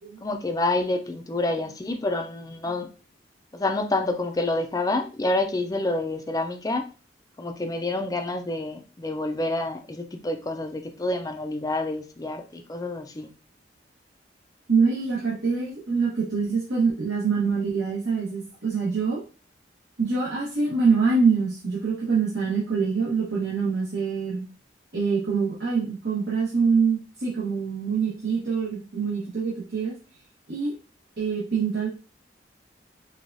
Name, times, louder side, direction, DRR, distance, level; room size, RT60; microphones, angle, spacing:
voice 1, 0.2-2.9 3.5-6.9 7.4-13.3, left 2 dB, 20° left, 5 dB, 0.4 m, -28 dB
voice 2, 14.7-19.2 20.0-24.4 24.9-29.9 30.5-30.7 31.2-31.9, right 5 dB, 75° right, -7 dB, 1.2 m, -25 dB
4.6 x 2.3 x 2.6 m, 0.35 s
head